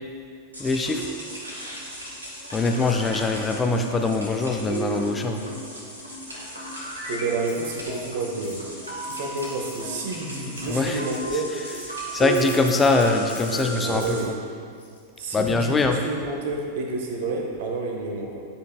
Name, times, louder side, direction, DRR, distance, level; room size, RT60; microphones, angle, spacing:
sound 1, 0.5-14.2, right 3 dB, 80° right, 1.5 m, -35 dB
voice 1, 0.6-1.0 2.5-5.4 10.7-11.0 12.1-14.2 15.3-16.0, left 3 dB, 15° left, 4 dB, 0.5 m, -22 dB
voice 2, 7.1-8.7 9.0-11.6 13.5-14.3 15.2-18.4, right 3 dB, 55° right, 1 dB, 1.0 m, -30 dB
sound 2, 7.5-8.0 8.4-9.8 10.5-10.7 11.1-14.3 14.7-15.5, left 4 dB, 70° left, 1.4 m, -44 dB
10.5 x 5.2 x 2.3 m, 2.3 s
figure-of-eight pair, 90°, 0 cm